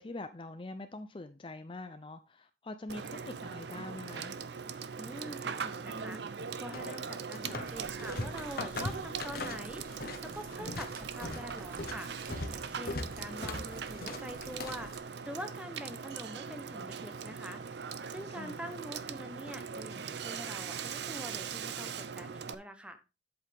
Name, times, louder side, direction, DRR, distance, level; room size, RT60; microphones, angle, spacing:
voice 1, 0.0-4.4 10.6-10.8 18.3-18.6, left 2 dB, 30° left, 0.5 m, -44 dB
Water / Water tap faucet / Sink (filling or washing), 2.9-22.5, right 6 dB, 65° right, 0.6 m, -41 dB
voice 2, 5.0-6.2 6.6-9.8 10.2-12.1 12.5-17.6 18.1-23.0, equal, 5° right, 0.9 m, -45 dB
sound 1, 6.7-7.7 8.0-10.2 10.5-14.9, left 2 dB, 55° left, 1.1 m, -39 dB
sound 2, 7.6-15.0, right 3 dB, 50° right, 1.6 m, -53 dB
8.1 x 8.0 x 3.5 m
head